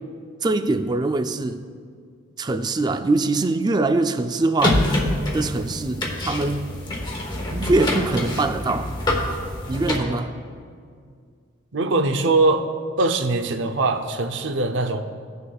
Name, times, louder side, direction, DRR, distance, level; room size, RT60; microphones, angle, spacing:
voice 1, 0.4-1.6 2.4-4.8 5.3-6.7 7.5-8.9 9.7-10.4, right 2 dB, 20° right, 9 dB, 0.3 m, -23 dB
sound 1, 4.6-10.0, left 1 dB, 25° left, 1.0 m, -25 dB
voice 2, 11.7-12.6 13.0-15.0, right 2 dB, 65° right, 6 dB, 0.6 m, -21 dB
16.0 x 6.6 x 2.3 m, 2.1 s
head